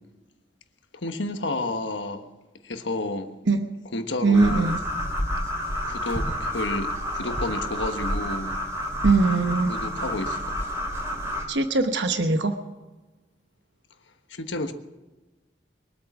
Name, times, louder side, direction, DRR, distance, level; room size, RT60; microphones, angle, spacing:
voice 1, 1.0-2.3 2.6-3.3 3.9-4.7 5.8-8.5 9.7-10.4 14.3-14.7, left 2 dB, 90° left, 7 dB, 1.3 m, -30 dB
voice 2, 4.2-4.8 9.0-9.7 11.5-12.5, right 3 dB, 80° right, 7 dB, 1.0 m, -21 dB
sound 1, 4.3-11.4, equal, 15° right, 3.1 m, -29 dB
22.5 x 8.5 x 7.3 m, 1.2 s
head